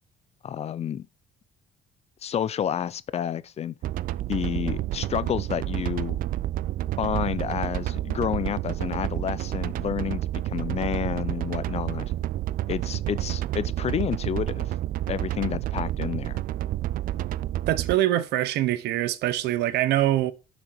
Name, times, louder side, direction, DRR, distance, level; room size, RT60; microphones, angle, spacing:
voice 1, 0.4-1.1 2.2-3.7 4.3-6.2 7.0-12.1 12.7-14.7 15.1-16.4, left 9 dB, 40° left, 0.4 m, -30 dB
sound 1, 3.8-17.9, right 14 dB, 55° right, 0.4 m, -29 dB
voice 2, 17.7-20.3, right 14 dB, 80° right, 0.8 m, -24 dB
6.3 x 6.2 x 4.5 m
cardioid pair, 110°, 17 cm